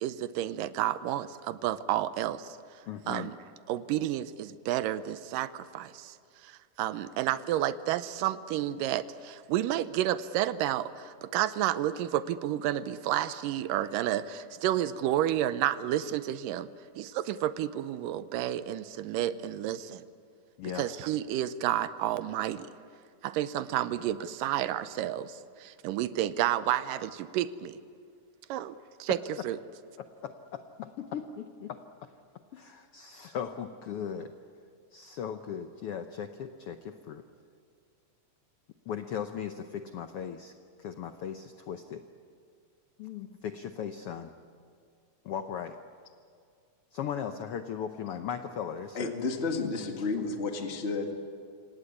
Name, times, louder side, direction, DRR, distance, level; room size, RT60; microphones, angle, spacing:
voice 1, 0.0-2.5 3.1-3.3 3.7-6.1 6.4-16.7 17.0-20.0 20.8-22.7 23.2-27.8 28.5-29.2 29.4-29.6, right 12 dB, 90° right, 14 dB, 2.4 m, -31 dB
voice 2, 2.9-3.3 19.3-19.4 20.6-20.9 29.1-29.2 30.0-32.1 32.5-34.3 34.9-37.3 38.8-40.5 40.8-42.0 43.0-44.3 45.2-45.8 46.9-49.1, left 8 dB, 75° left, 8 dB, 1.3 m, -38 dB
voice 3, 48.9-51.1, left 4 dB, 25° left, 3 dB, 1.7 m, -31 dB
27.0 x 18.0 x 9.7 m, 2.2 s
omnidirectional pair, 3.7 m